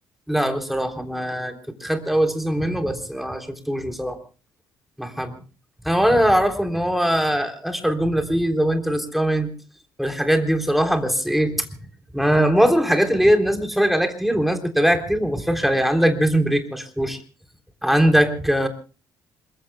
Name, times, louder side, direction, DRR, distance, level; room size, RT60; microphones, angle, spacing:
voice 1, 0.3-1.5 1.8-4.2 5.0-5.3 5.8-9.5 10.0-11.7 12.1-17.2 17.8-18.7, equal, ahead, 5 dB, 3.6 m, -21 dB
27.0 x 22.5 x 2.3 m, 0.35 s
figure-of-eight pair, 45°, 11 cm